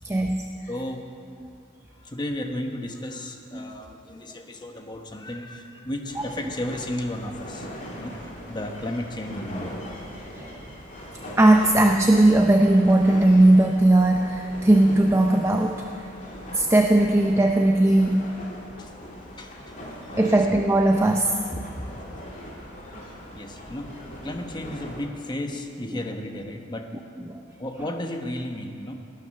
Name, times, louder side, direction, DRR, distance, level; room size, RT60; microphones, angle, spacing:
voice 1, 0.0-0.4 1.4-1.5 3.5-3.7 10.4-10.5 11.4-15.8 16.5-18.3 20.2-21.4 27.3-27.4, right 1 dB, 15° right, 3 dB, 0.5 m, -18 dB
voice 2, 0.7-1.0 2.0-7.7 7.9-9.8 18.8-19.1 19.4-19.8 20.0-20.4 21.5-22.0 23.1-26.9 27.6-28.9, left 1 dB, 20° left, 4 dB, 1.1 m, -34 dB
sound 1, 6.1-25.0, equal, 40° left, 3.0 m, -40 dB
18.5 x 9.4 x 6.5 m, 2.7 s
head